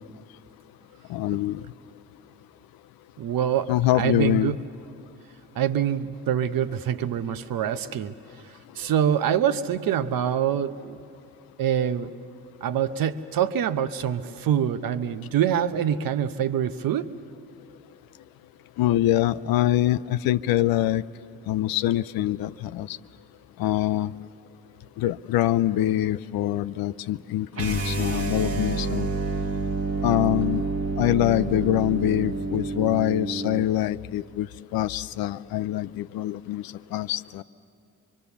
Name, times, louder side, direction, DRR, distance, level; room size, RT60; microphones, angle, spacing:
voice 1, 1.1-1.7 3.7-4.6 18.8-21.0 21.5-23.0 23.6-24.1 25.0-29.1 30.0-30.6 31.0-37.4, left 13 dB, 70° left, 14 dB, 0.6 m, -24 dB
voice 2, 3.2-4.5 5.6-8.1 8.8-11.0 11.6-12.1 12.6-17.1, right 9 dB, 65° right, 11 dB, 0.9 m, -25 dB
sound 1, 27.5-33.7, right 3 dB, 40° right, 1.3 m, -28 dB
24.5 x 24.0 x 7.0 m, 2.6 s
hypercardioid pair, 55°, 38 cm